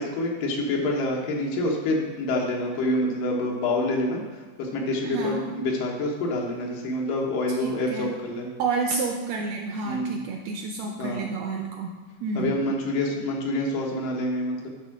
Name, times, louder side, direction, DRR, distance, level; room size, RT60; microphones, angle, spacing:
voice 1, 0.0-4.2 4.6-8.5 9.8-10.2 11.0-11.2 12.3-14.7, left 1 dB, 90° left, -1 dB, 2.9 m, -27 dB
voice 2, 5.1-5.5 7.6-8.1 8.6-11.9 12.2-12.5, right 4 dB, 80° right, 2 dB, 1.6 m, -29 dB
11.0 x 3.6 x 6.0 m, 1.4 s
omnidirectional pair, 3.6 m